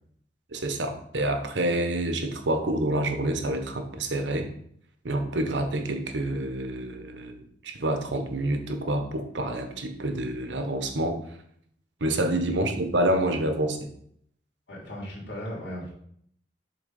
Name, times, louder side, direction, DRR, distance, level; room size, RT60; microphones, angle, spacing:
voice 1, 0.5-4.5 5.0-11.2 12.0-13.9, right 1 dB, 85° right, 6 dB, 0.9 m, -28 dB
voice 2, 14.7-15.9, equal, 85° left, -4 dB, 3.0 m, -36 dB
7.0 x 3.5 x 5.3 m, 0.66 s
head